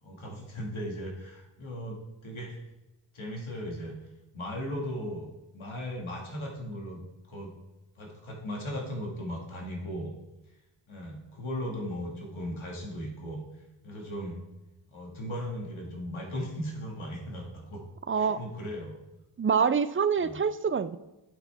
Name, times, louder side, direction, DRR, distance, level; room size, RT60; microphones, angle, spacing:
voice 1, 0.0-2.6 3.1-3.9 4.3-5.3 5.5-7.0 7.3-7.5 8.0-10.1 10.9-13.4 13.8-14.4 14.9-17.8 18.1-18.9 20.2-20.4, equal, 80° left, -1 dB, 2.1 m, -37 dB
voice 2, 18.1-18.4 19.4-21.0, right 6 dB, 30° right, 14 dB, 0.4 m, -26 dB
8.4 x 8.0 x 3.5 m, 0.99 s
wide cardioid pair, 60°, 47 cm